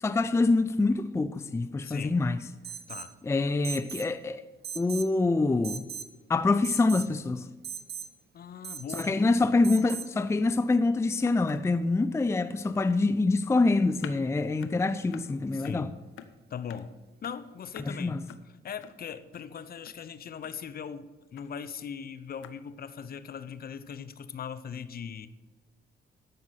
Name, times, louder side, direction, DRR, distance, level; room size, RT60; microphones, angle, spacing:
voice 1, 0.0-2.4 3.3-4.4 4.8-5.8 6.3-7.4 8.9-15.9 17.9-18.2, left 3 dB, 15° left, 0.5 m, -25 dB
voice 2, 1.8-2.2 2.9-3.1 8.3-9.5 15.5-15.9 16.5-16.9 17.2-25.3, left 7 dB, 50° left, 0.8 m, -40 dB
Alarm, 2.6-3.1 3.6-4.1 4.6-5.1 5.6-6.1 6.6-7.1 7.6-8.1 8.6-9.1 9.6-10.1, right 8 dB, 55° right, 0.8 m, -39 dB
sound 1, 8.8-8.9 9.2-9.3 9.6-10.1 10.4-10.5 11.2-11.9 12.6-13.0 14.0-14.1 14.6-14.7 15.1-15.3 15.6-15.8 16.2-16.3 16.7-16.8 17.2-17.3 17.7-17.9 18.3-18.4 18.8-18.9 19.3-19.4 19.8-19.9 20.4-20.5 21.3-21.5 22.4-22.5, left 10 dB, 80° left, 0.8 m, -46 dB
13.5 x 5.4 x 6.4 m
cardioid pair, 90°, 20 cm